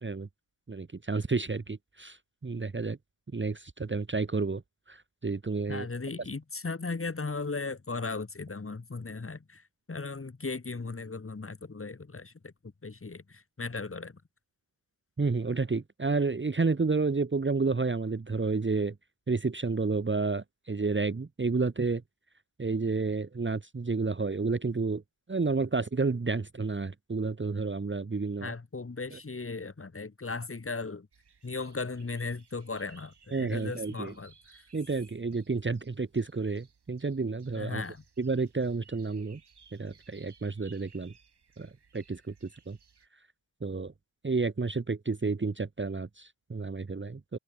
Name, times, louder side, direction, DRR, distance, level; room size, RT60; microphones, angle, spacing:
voice 1, 0.7-3.0 3.3-4.6 4.9-5.9 15.2-18.9 19.3-22.0 22.6-25.0 25.3-28.5 29.1-29.2 33.3-34.1 34.7-37.8 38.2-39.4 39.7-41.1 41.6-42.3 42.7-42.8 43.6-43.9 44.2-47.4, right 4 dB, 25° right, 1.3 m, -30 dB
voice 2, 5.7-12.5 12.8-14.2 28.4-31.1 31.4-34.6 37.5-38.0, left 3 dB, 25° left, 2.7 m, -37 dB
sound 1, 31.1-43.1, right 6 dB, 55° right, 7.0 m, -61 dB
open air
wide cardioid pair, 130°, 48 cm